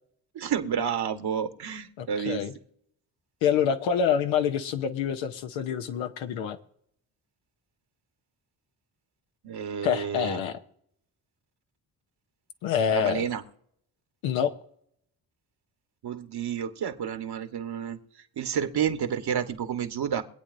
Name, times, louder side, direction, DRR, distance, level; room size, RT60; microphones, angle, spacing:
voice 1, 0.3-2.4 9.4-10.4 12.9-13.4 16.0-18.0 18.4-20.2, right 8 dB, 55° right, 7 dB, 1.4 m, -30 dB
voice 2, 2.0-2.5 3.4-6.6 9.8-10.6 12.6-13.3 14.2-14.5, left 8 dB, 80° left, 7 dB, 1.0 m, -26 dB
24.0 x 8.6 x 2.7 m, 0.68 s
hypercardioid pair, 45°, 46 cm